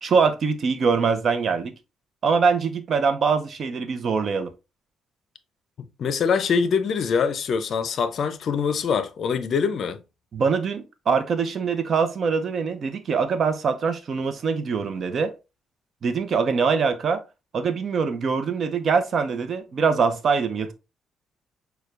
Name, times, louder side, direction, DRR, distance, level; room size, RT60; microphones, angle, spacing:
voice 1, 0.0-1.7 2.2-4.5 10.3-15.3 16.0-17.2 17.5-20.7, right 5 dB, 55° right, 0.6 m, -23 dB
voice 2, 6.0-10.0, left 6 dB, 60° left, 0.4 m, -24 dB
6.4 x 2.2 x 2.4 m
cardioid pair, 90°, 0 cm